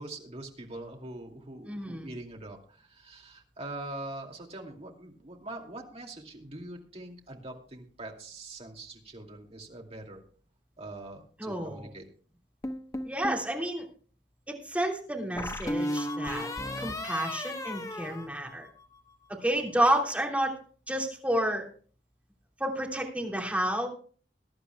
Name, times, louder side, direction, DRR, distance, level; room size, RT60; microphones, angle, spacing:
voice 1, 0.0-10.2 10.8-12.0, right 2 dB, 35° right, 1 dB, 2.5 m, -43 dB
voice 2, 1.6-2.1 11.4-11.9 13.0-13.8 14.5-16.5 16.8-18.7 19.4-20.5 20.9-21.7 22.6-23.9, right 1 dB, 10° right, 0 dB, 3.1 m, -30 dB
sound 1, 12.6-13.5 15.4-19.0, left 1 dB, 20° left, 1.0 m, -35 dB
22.0 x 11.5 x 2.3 m, 0.42 s
head